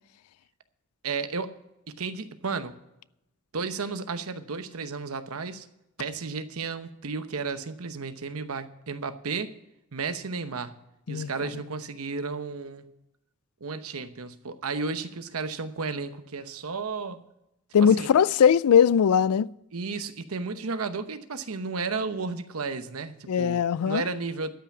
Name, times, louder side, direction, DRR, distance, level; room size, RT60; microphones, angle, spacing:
voice 1, 1.0-1.5 1.9-2.7 3.5-5.7 6.0-9.5 9.9-10.8 11.1-12.9 13.6-17.2 17.8-18.1 19.7-24.5, right 4 dB, 80° right, 0.9 m, -33 dB
voice 2, 11.1-11.5 17.7-19.5 23.3-24.0, left 7 dB, 85° left, 0.4 m, -20 dB
12.5 x 5.9 x 9.2 m
head